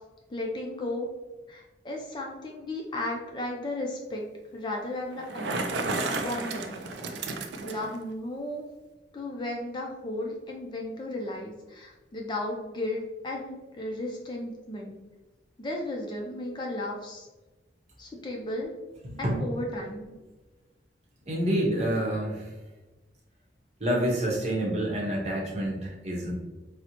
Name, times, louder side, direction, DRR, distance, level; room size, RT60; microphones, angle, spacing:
voice 1, 0.3-1.1 1.5-4.3 4.5-5.8 6.1-6.7 7.6-8.6 9.1-15.0 15.6-17.3 18.0-18.7 19.2-20.2, left 1 dB, 25° left, 0 dB, 0.4 m, -34 dB
Bicycle, 5.1-8.0, right 3 dB, 85° right, 0.4 m, -32 dB
voice 2, 19.0-19.4 21.3-22.4 23.8-26.3, right 1 dB, 40° right, -2 dB, 0.8 m, -28 dB
4.1 x 2.0 x 2.9 m, 1.1 s
head